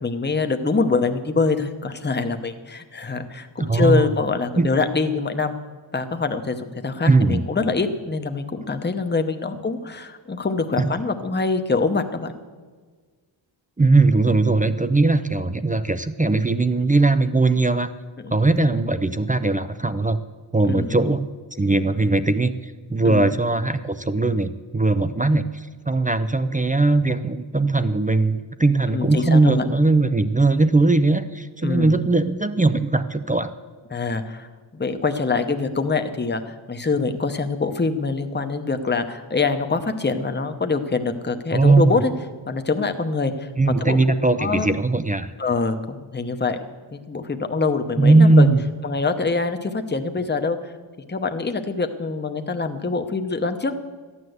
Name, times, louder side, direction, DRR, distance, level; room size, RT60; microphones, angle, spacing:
voice 1, 0.0-5.5 5.9-12.3 18.5-18.7 20.7-20.9 23.0-23.3 28.9-29.6 31.6-32.0 33.9-42.1 42.5-43.5 43.8-44.0 44.4-44.7 45.4-46.6 46.9-48.5 48.8-50.6 51.1-53.7, left 4 dB, 20° left, 7 dB, 0.9 m, -24 dB
voice 2, 3.6-4.1 4.6-4.7 7.1-7.4 10.8-10.9 13.8-17.9 18.3-20.2 20.5-21.3 21.6-33.5 41.5-41.9 43.6-45.3 48.0-48.6, right 3 dB, 15° right, 11 dB, 0.5 m, -19 dB
14.0 x 9.9 x 7.9 m, 1.5 s
wide cardioid pair, 120°, 48 cm